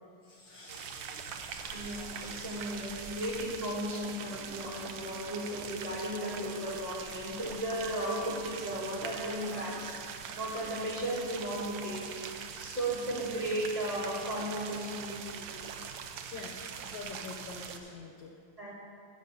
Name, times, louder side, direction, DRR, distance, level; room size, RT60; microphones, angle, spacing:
voice 1, 0.3-3.2 8.9-9.8 16.3-16.6 16.8-18.3, left 4 dB, 65° left, 1 dB, 1.2 m, -48 dB
sound 1, 0.7-17.8, right 7 dB, 70° right, 1.2 m, -42 dB
voice 2, 1.7-9.9 10.4-12.0 12.6-15.5 18.6-18.7, right 1 dB, 15° right, -7 dB, 2.0 m, -35 dB
13.5 x 5.3 x 6.7 m, 2.4 s
omnidirectional pair, 2.4 m